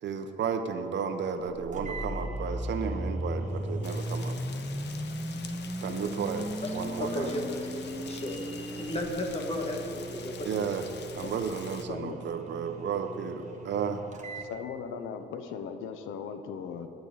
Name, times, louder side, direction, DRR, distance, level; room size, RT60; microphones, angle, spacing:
voice 1, 0.0-4.4 5.8-7.3 10.4-10.9 11.1-14.0, right 6 dB, 65° right, 8 dB, 1.1 m, -33 dB
sound 1, 1.4-1.5 1.7-14.5, right 6 dB, 35° right, 1.6 m, -45 dB
sound 2, 1.6-11.4, equal, ahead, 0.3 m, -37 dB
Rain, 3.8-11.8, left 6 dB, 60° left, 1.1 m, -46 dB
voice 2, 7.0-10.5, left 1 dB, 30° left, 2 dB, 2.1 m, -34 dB
voice 3, 14.4-16.9, left 7 dB, 90° left, 9 dB, 1.0 m, -38 dB
18.0 x 10.5 x 4.2 m, 2.9 s
cardioid pair, 90°, 20 cm